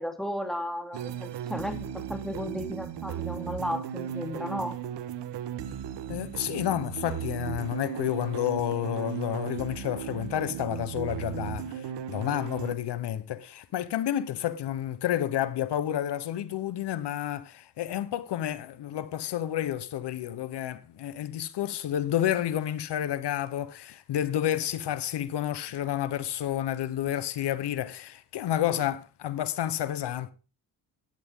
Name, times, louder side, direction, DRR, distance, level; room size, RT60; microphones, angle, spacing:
voice 1, 0.0-4.8, equal, ahead, 2.8 m, -34 dB
sound 1, 0.9-12.8, right 9 dB, 80° right, 1.3 m, -36 dB
voice 2, 6.1-30.3, left 11 dB, 75° left, 1.0 m, -30 dB
14.5 x 10.0 x 3.7 m
cardioid pair, 80°, 42 cm